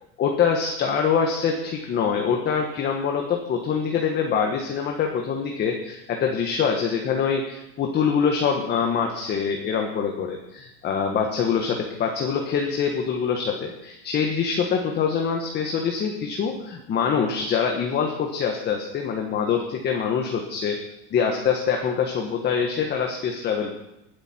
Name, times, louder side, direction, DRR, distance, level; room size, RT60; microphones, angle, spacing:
voice 1, 0.2-20.8 21.1-23.8, left 6 dB, 35° left, 2 dB, 1.4 m, -24 dB
20.0 x 8.3 x 4.4 m, 0.88 s
cardioid pair, 150°, 31 cm